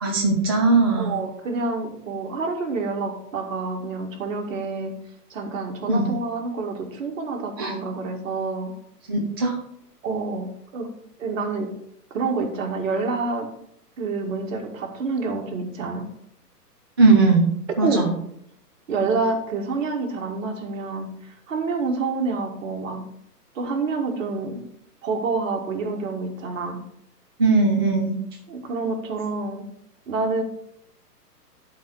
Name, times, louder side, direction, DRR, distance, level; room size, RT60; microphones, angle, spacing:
voice 1, 0.0-1.2 5.9-6.1 7.6-7.7 9.1-9.6 17.0-17.5 17.8-18.1 27.4-28.1, right 3 dB, 15° right, 0 dB, 0.4 m, -19 dB
voice 2, 1.0-4.9 5.3-8.7 10.0-10.5 10.7-10.9 11.2-11.7 12.1-13.5 14.0-16.1 17.8-18.0 18.9-21.1 21.5-23.0 23.6-24.6 25.0-26.8 28.5-29.6 30.1-30.4, right 4 dB, 55° right, 2 dB, 2.0 m, -27 dB
11.5 x 4.4 x 4.8 m, 0.74 s
figure-of-eight pair, 125°, 48 cm